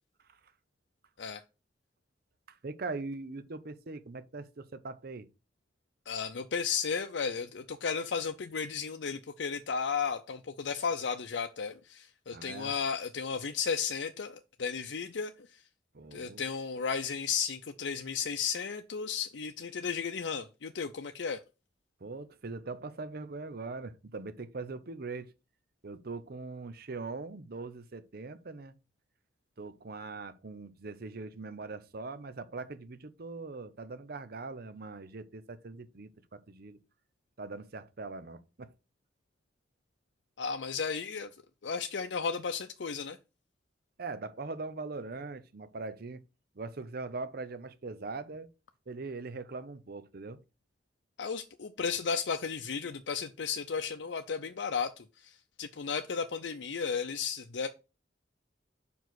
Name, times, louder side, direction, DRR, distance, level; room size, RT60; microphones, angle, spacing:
voice 1, 2.5-5.3 12.3-12.7 15.9-16.4 22.0-25.3 25.8-28.8 29.6-36.8 37.4-38.7 44.0-46.2 46.5-48.5 48.9-50.4, right 3 dB, 60° right, 0.7 m, -41 dB
voice 2, 6.1-15.6 16.1-21.4 40.4-41.3 41.6-43.2 51.2-57.7, left 6 dB, 80° left, 0.6 m, -34 dB
5.4 x 4.7 x 6.1 m
head